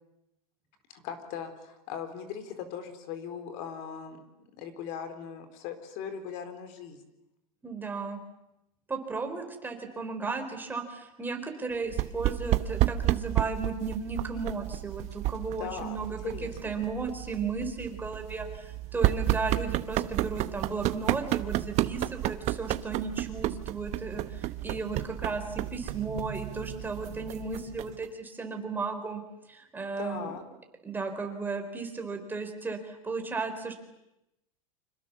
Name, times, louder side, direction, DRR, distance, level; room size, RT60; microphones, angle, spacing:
voice 1, 0.9-4.2 4.5-7.0 15.6-16.8 30.0-30.4, left 7 dB, 50° left, 9 dB, 4.2 m, -39 dB
voice 2, 7.6-8.2 8.9-29.2 29.5-30.3 30.8-33.7, right 4 dB, 10° right, 5 dB, 3.9 m, -35 dB
sound 1, 11.9-28.1, right 15 dB, 40° right, 1.0 m, -31 dB
29.0 x 26.0 x 7.3 m, 0.89 s
supercardioid pair, 140°, 18 cm